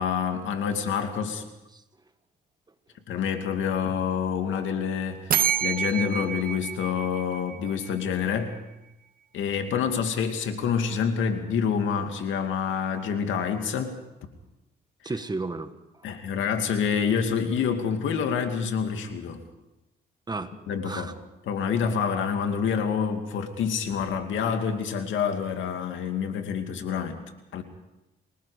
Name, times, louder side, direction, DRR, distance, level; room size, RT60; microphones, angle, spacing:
voice 1, 0.0-1.5 3.1-5.3 5.6-8.5 9.3-14.0 16.0-19.4 20.7-21.1 21.5-27.2 27.5-27.6, left 7 dB, 75° left, 6 dB, 2.4 m, -27 dB
sound 1, 5.3-8.1, right 9 dB, 45° right, 0.6 m, -28 dB
voice 2, 15.0-16.1 20.3-21.1, right 3 dB, 20° right, 10 dB, 1.5 m, -34 dB
29.5 x 20.0 x 5.1 m, 0.96 s
cardioid pair, 90°, 20 cm